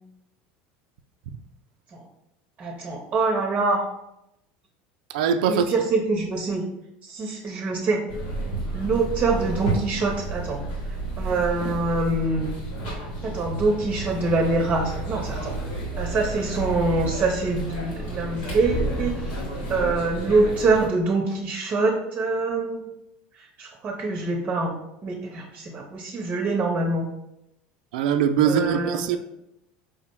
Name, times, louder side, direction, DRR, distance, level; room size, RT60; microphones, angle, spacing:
voice 1, 2.6-3.8 5.5-6.6 7.0-8.0 8.7-10.6 11.2-12.5 13.2-15.6 16.0-19.2 19.7-22.8 23.6-24.8 25.0-27.1 28.5-29.2, right 3 dB, 30° right, 2 dB, 0.7 m, -25 dB
voice 2, 5.1-5.6 27.9-29.2, right 7 dB, 85° right, 9 dB, 0.4 m, -22 dB
sound 1, 8.1-20.9, right 2 dB, 85° left, 1.3 m, -31 dB
sound 2, 18.4-20.0, left 2 dB, 15° left, 0.3 m, -32 dB
5.0 x 2.0 x 4.5 m, 0.84 s
supercardioid pair, 115°, 4 cm